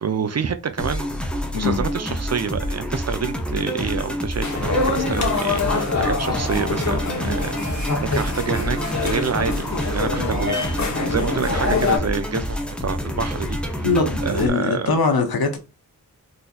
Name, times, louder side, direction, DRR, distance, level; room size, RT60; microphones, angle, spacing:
voice 1, 0.0-1.1 1.5-10.7 11.1-13.9 14.2-15.0, right 6 dB, 45° right, 0.5 m, -27 dB
sound 1, 0.8-14.5, equal, 5° left, 0.7 m, -28 dB
voice 2, 1.5-1.8 13.8-15.6, left 4 dB, 85° left, 0.9 m, -21 dB
sound 2, 4.4-12.0, left 3 dB, 50° left, 1.0 m, -25 dB
4.0 x 2.7 x 2.4 m
wide cardioid pair, 65°, 36 cm